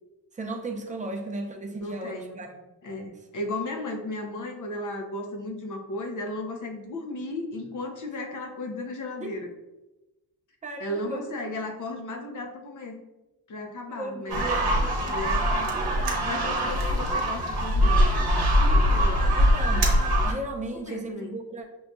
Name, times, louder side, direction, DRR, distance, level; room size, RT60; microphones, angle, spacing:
voice 1, 0.3-2.5 9.2-9.4 10.6-11.3 13.9-14.7 16.6-16.7 19.4-19.9 20.2-21.7, right 2 dB, 20° right, 2 dB, 0.5 m, -35 dB
voice 2, 1.8-2.3 2.8-9.5 10.8-13.0 13.5-14.5 15.1-18.1 18.7-19.3 20.8-21.4, left 2 dB, 45° left, 4 dB, 0.7 m, -35 dB
sound 1, 14.3-20.3, equal, 60° right, 1.0 m, -22 dB
6.2 x 2.6 x 2.3 m, 1.0 s
cardioid pair, 105°, 42 cm